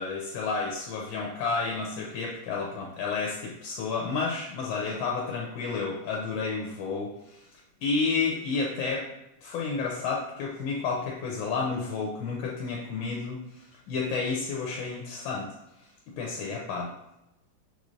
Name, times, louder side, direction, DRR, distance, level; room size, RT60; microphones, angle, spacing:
voice 1, 0.0-7.4 7.8-9.1 9.4-15.5 16.1-16.9, left 4 dB, 80° left, -1 dB, 1.5 m, -31 dB
5.8 x 3.1 x 2.5 m, 0.88 s
omnidirectional pair, 2.2 m